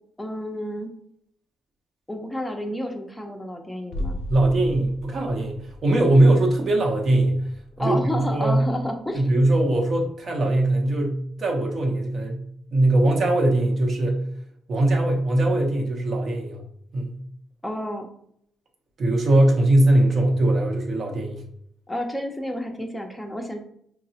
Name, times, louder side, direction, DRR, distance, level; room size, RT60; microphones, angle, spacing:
voice 1, 0.2-0.9 2.1-4.2 7.8-9.2 17.6-18.1 21.9-23.6, left 1 dB, 5° left, 3 dB, 0.6 m, -30 dB
sound 1, 3.9-9.6 9.9-10.0, left 1 dB, 65° left, 0.3 m, -37 dB
voice 2, 4.3-7.4 7.8-8.7 9.1-12.4 12.7-14.3 14.7-16.6 16.9-17.2 19.0-21.4, right 1 dB, 45° right, 1 dB, 0.8 m, -21 dB
4.5 x 2.0 x 2.8 m, 0.69 s
cardioid pair, 90°, 0 cm